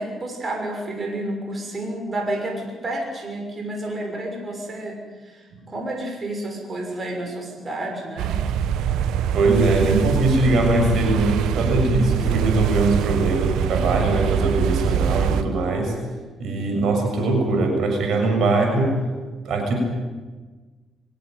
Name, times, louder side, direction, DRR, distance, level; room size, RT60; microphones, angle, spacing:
voice 1, 0.0-8.4 16.6-16.9, right 1 dB, 35° right, 2 dB, 6.3 m, -30 dB
sound 1, 8.2-15.4, right 8 dB, 90° right, 1.1 m, -23 dB
voice 2, 9.3-15.9 16.4-19.0 19.4-19.8, right 2 dB, 70° right, 3 dB, 6.8 m, -21 dB
24.0 x 17.0 x 9.4 m, 1.3 s
cardioid pair, 90°, 0 cm